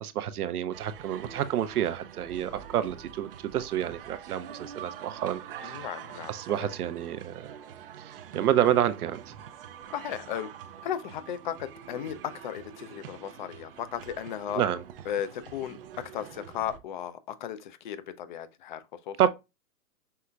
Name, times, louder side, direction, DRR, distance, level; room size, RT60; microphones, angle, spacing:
voice 1, 0.0-5.9 6.3-7.5 8.0-9.4 14.5-14.8 19.2-19.3, right 11 dB, 85° right, 0.7 m, -29 dB
sound 1, 0.7-16.8, right 9 dB, 40° right, 0.5 m, -45 dB
voice 2, 5.6-6.7 9.9-10.5 10.8-14.6 15.1-19.2, left 10 dB, 35° left, 0.4 m, -36 dB
5.6 x 3.2 x 2.3 m
hypercardioid pair, 140°, 44 cm